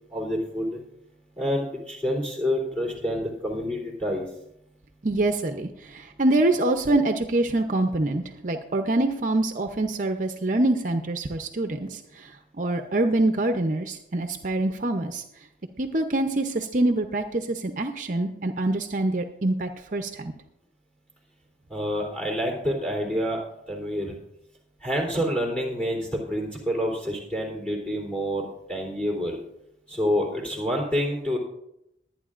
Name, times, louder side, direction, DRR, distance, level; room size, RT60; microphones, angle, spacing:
voice 1, 0.1-0.8 1.4-4.3 21.7-23.4 23.7-24.1 24.8-29.4 29.9-31.4, equal, 10° left, 0 dB, 3.2 m, -28 dB
voice 2, 5.0-12.3 12.6-15.2 15.8-20.3, right 2 dB, 45° right, 6 dB, 0.7 m, -25 dB
22.5 x 9.3 x 2.5 m, 0.82 s
head